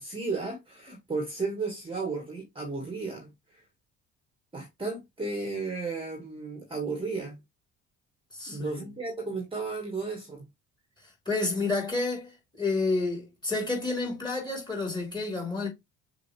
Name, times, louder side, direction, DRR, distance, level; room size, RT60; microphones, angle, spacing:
voice 1, 0.0-3.6 4.5-7.4 8.5-10.4, right 3 dB, 15° right, 1.7 m, -34 dB
voice 2, 8.3-8.8 11.3-15.7, left 3 dB, 10° left, 2.9 m, -30 dB
6.8 x 2.4 x 3.1 m
figure-of-eight pair, 50°, 40 cm